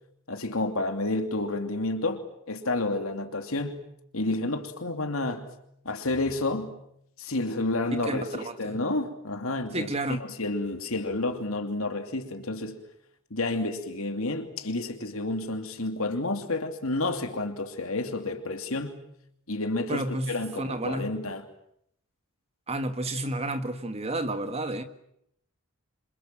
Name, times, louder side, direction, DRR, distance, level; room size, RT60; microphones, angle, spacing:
voice 1, 0.3-3.8 4.1-5.5 5.8-6.8 7.2-12.8 13.3-19.0 19.5-21.4, left 2 dB, 70° left, 2.8 m, -30 dB
voice 2, 8.1-8.8 9.7-10.2 19.9-21.1 22.7-24.8, right 1 dB, 30° right, 1.9 m, -31 dB
28.0 x 26.0 x 7.6 m
head